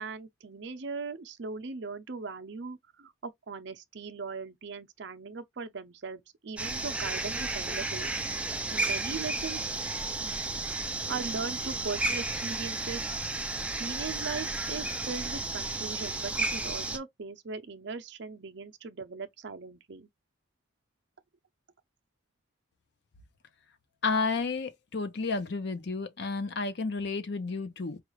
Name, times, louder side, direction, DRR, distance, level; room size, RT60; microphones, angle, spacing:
voice 1, 0.0-8.1 8.7-9.7 11.1-13.1 13.8-20.1, right 4 dB, 55° right, 0.6 m, -39 dB
sound 1, 6.6-17.0, right 2 dB, 5° right, 0.4 m, -33 dB
voice 2, 24.0-28.0, left 4 dB, 55° left, 0.6 m, -31 dB
4.9 x 2.4 x 3.0 m
head